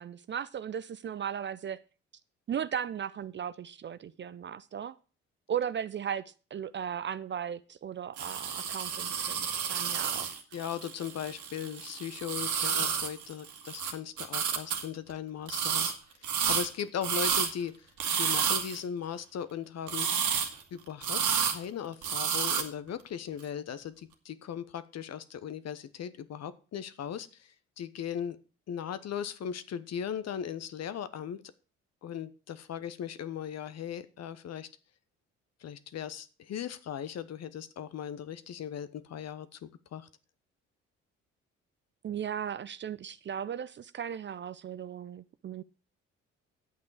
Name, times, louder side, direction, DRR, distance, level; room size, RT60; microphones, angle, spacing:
voice 1, 0.0-1.8 2.5-4.9 5.5-10.3 42.0-45.6, right 8 dB, 30° right, 0.5 m, -36 dB
sound 1, 8.2-13.9 14.2-14.8 15.5-15.9 16.2-17.5 18.0-18.8 19.9-20.6 21.0-21.6 22.0-22.6, right 7 dB, 55° right, 1.8 m, -30 dB
voice 2, 10.5-15.9 16.2-17.9 18.1-20.1 20.7-28.4 28.7-31.4 32.0-34.7 35.6-40.1, left 8 dB, 45° left, 0.9 m, -38 dB
10.0 x 8.4 x 4.8 m
figure-of-eight pair, 45°, 37 cm